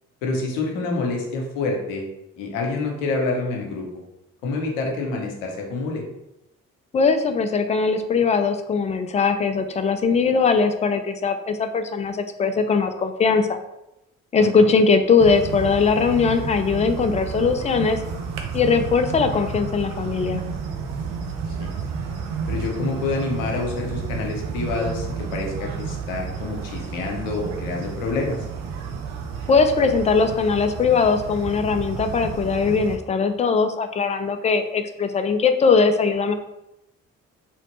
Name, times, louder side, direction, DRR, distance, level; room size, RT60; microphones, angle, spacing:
voice 1, 0.2-2.0 2.4-3.9 4.4-6.0 14.5-14.7 21.5-21.7 22.5-28.5, left 3 dB, 80° left, 1 dB, 0.7 m, -27 dB
voice 2, 6.9-13.6 14.3-18.0 18.5-20.4 29.5-36.3, left 5 dB, 20° left, 7 dB, 0.3 m, -20 dB
sound 1, 15.2-33.0, right 6 dB, 70° right, 0.6 m, -31 dB
3.0 x 2.5 x 2.9 m, 0.87 s
figure-of-eight pair, 40°, 40 cm